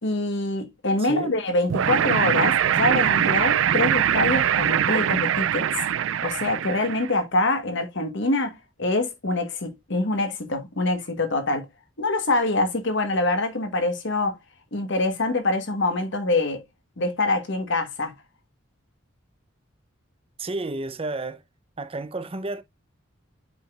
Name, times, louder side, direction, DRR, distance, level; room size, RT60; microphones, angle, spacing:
voice 1, 0.0-5.7 6.2-11.7 12.0-14.4 14.7-16.6 17.0-18.1, left 2 dB, 65° left, 1.5 m, -25 dB
voice 2, 1.0-1.4 20.4-21.4 21.8-22.6, right 2 dB, 30° right, 0.7 m, -31 dB
sound 1, 1.7-7.1, right 9 dB, 70° right, 0.4 m, -22 dB
8.0 x 5.0 x 2.5 m
head